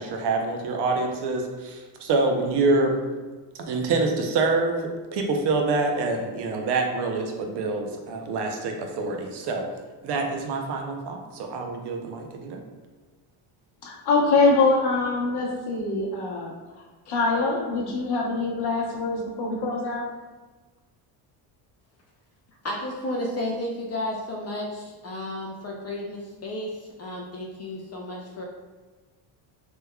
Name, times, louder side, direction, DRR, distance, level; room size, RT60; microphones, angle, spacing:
voice 1, 0.0-3.0 3.6-9.7 10.0-12.6, right 3 dB, 55° right, 3 dB, 0.7 m, -26 dB
voice 2, 13.8-16.5 17.1-20.1, left 3 dB, 50° left, -2 dB, 0.9 m, -24 dB
voice 3, 22.6-28.4, left 1 dB, 35° left, -2 dB, 0.4 m, -32 dB
3.3 x 3.1 x 2.2 m, 1.3 s
cardioid pair, 95°, 50 cm